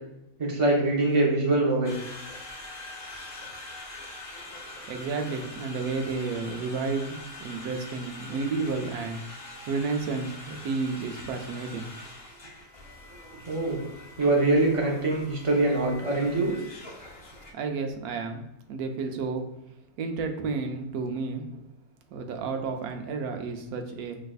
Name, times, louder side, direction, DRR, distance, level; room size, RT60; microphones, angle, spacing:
voice 1, 0.4-1.9 13.5-13.8 14.2-16.5, right 2 dB, 30° right, -1 dB, 0.7 m, -23 dB
Conversation, 1.8-17.5, left 1 dB, 30° left, 0.6 m, -43 dB
voice 2, 4.9-9.2 9.7-11.9 17.5-18.4 18.7-19.5 20.0-21.6 22.1-24.2, right 4 dB, 85° right, 4 dB, 1.1 m, -31 dB
6.2 x 2.5 x 2.3 m, 0.85 s
omnidirectional pair, 1.6 m